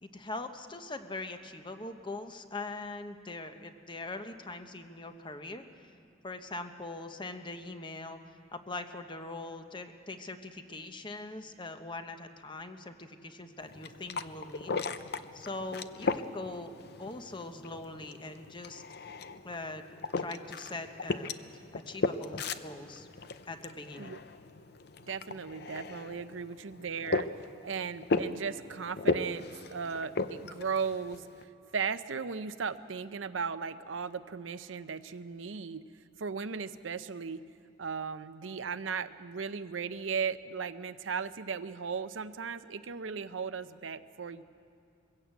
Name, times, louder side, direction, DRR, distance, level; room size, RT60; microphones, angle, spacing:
voice 1, 0.0-5.6 6.2-8.2 8.5-14.7 15.3-16.7 17.0-18.8 19.4-19.8 20.2-21.3 21.7-23.1 23.5-24.2, left 2 dB, 25° left, 8 dB, 1.0 m, -42 dB
sound 1, 13.6-31.4, left 3 dB, 55° left, 0.6 m, -37 dB
voice 2, 25.1-27.3 27.6-31.3 31.7-35.8 36.2-37.4 37.8-44.4, right 6 dB, 90° right, 12 dB, 0.7 m, -36 dB
21.5 x 15.5 x 8.2 m, 2.5 s
head